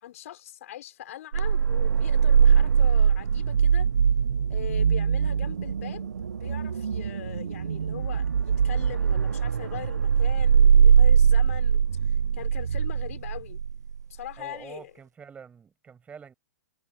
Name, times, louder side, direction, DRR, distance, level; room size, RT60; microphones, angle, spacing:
voice 1, 0.0-3.9 4.5-6.1 6.4-13.6 14.1-14.9, left 12 dB, 55° left, 5.1 m, -41 dB
sound 1, 1.3-14.0, right 7 dB, 75° right, 0.7 m, -22 dB
voice 2, 14.4-16.3, right 6 dB, 15° right, 6.5 m, -46 dB
figure-of-eight pair, 115°, 9 cm